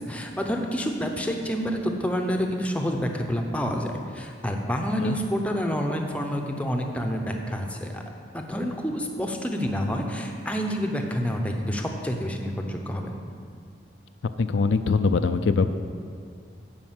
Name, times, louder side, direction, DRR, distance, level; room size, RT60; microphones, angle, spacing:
voice 1, 0.0-8.0 8.3-13.1, equal, 5° left, 2 dB, 0.7 m, -28 dB
voice 2, 14.4-15.7, left 4 dB, 70° left, 9 dB, 0.4 m, -22 dB
9.7 x 5.3 x 7.5 m, 2.3 s
head